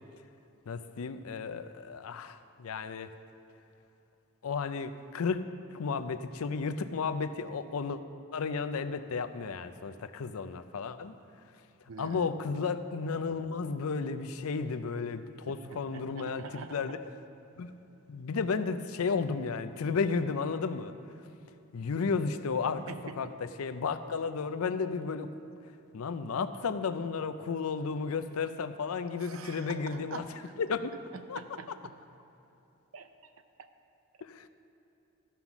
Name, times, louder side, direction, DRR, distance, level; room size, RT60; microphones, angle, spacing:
voice 1, 0.7-3.1 4.4-5.4 5.7-8.0 8.3-11.2 12.0-16.4 16.7-17.0 17.6-17.7 18.1-20.9 21.7-22.8 23.2-23.3 23.6-25.3 25.9-30.2 30.6-30.9 31.3-31.4 34.3-34.4, left 5 dB, 85° left, 11 dB, 0.5 m, -33 dB
voice 2, 11.9-12.3 15.3-17.0 22.8-23.3 29.2-30.5 31.1-31.9 32.9-33.1, right 4 dB, 70° right, 9 dB, 0.6 m, -45 dB
13.5 x 5.7 x 5.9 m, 2.9 s
head